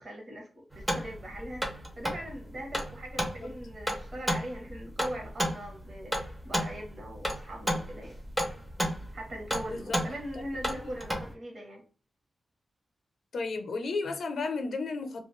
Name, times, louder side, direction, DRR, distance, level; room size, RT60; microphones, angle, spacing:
voice 1, 0.0-1.7 2.0-8.2 9.1-11.8, equal, 40° right, 0.9 m, -41 dB
sound 1, 0.7-11.3, equal, 10° right, 0.5 m, -33 dB
voice 2, 9.7-10.0 10.6-10.9 13.3-15.3, left 3 dB, 65° left, 0.5 m, -33 dB
2.4 x 2.2 x 3.0 m
wide cardioid pair, 170°, 0 cm